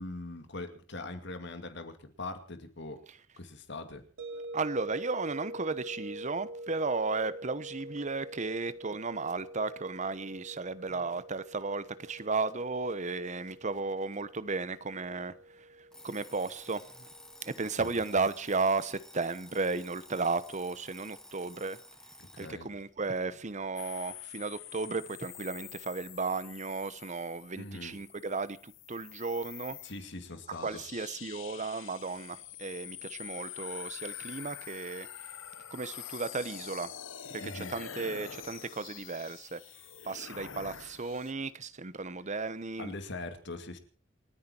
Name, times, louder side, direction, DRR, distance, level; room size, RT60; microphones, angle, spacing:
voice 1, 0.0-3.0 3.4-4.0 10.9-11.0 17.6-18.0 22.2-22.7 27.6-28.0 29.8-30.8 37.4-37.7 42.8-43.8, left 2 dB, 65° left, 2.5 m, -42 dB
sound 1, 4.2-19.1, right 1 dB, 80° right, 2.7 m, -46 dB
voice 2, 4.5-15.3 16.0-16.8 17.4-21.8 22.4-29.8 30.6-35.1 35.7-36.9 37.3-39.6 40.0-42.9, right 3 dB, 40° right, 1.0 m, -34 dB
Alarm, 15.9-22.6, left 1 dB, 5° left, 1.2 m, -53 dB
sound 2, 23.8-41.3, left 10 dB, 85° left, 1.2 m, -46 dB
28.5 x 9.5 x 4.5 m
head